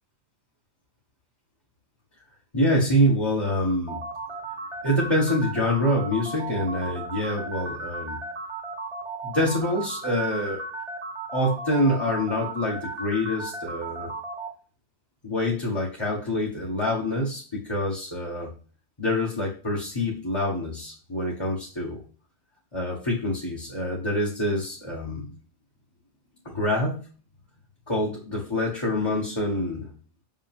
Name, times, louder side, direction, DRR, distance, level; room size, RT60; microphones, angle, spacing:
voice 1, 2.5-4.0 4.8-8.2 9.2-10.6 11.3-14.1 15.2-18.5 19.0-22.0 22.7-25.3 26.4-27.0 27.9-29.9, left 1 dB, 20° left, -3 dB, 1.6 m, -26 dB
sound 1, 3.9-14.5, right 2 dB, 25° right, 1.3 m, -35 dB
6.4 x 5.5 x 3.6 m, 0.40 s
omnidirectional pair, 1.3 m